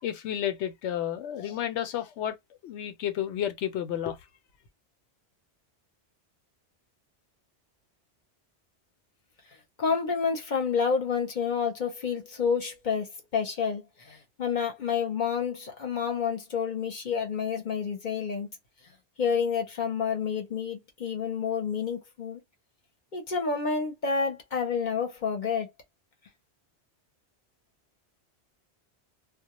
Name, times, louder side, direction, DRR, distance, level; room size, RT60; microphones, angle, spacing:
voice 1, 0.0-2.4 2.6-4.2, left 10 dB, 80° left, 0.9 m, -31 dB
voice 2, 9.8-18.5 19.2-22.4 23.1-25.7, left 6 dB, 50° left, 0.7 m, -29 dB
2.2 x 2.0 x 2.8 m
omnidirectional pair, 1.2 m